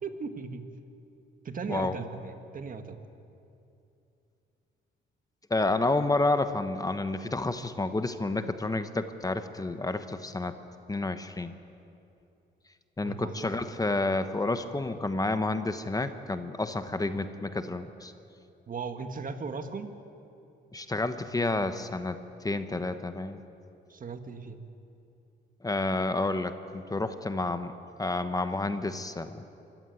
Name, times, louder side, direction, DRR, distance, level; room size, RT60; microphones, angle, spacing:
voice 1, 0.0-0.6 1.4-3.0 13.0-13.5 18.7-19.9 23.9-24.6, right 5 dB, 45° right, 8 dB, 1.8 m, -37 dB
voice 2, 5.5-10.5 10.9-11.5 13.0-18.1 20.7-22.2 22.4-23.4 25.6-27.7 28.0-29.5, left 2 dB, 20° left, 10 dB, 1.1 m, -30 dB
24.5 x 15.0 x 9.3 m, 2.7 s
cardioid pair, 90°, 20 cm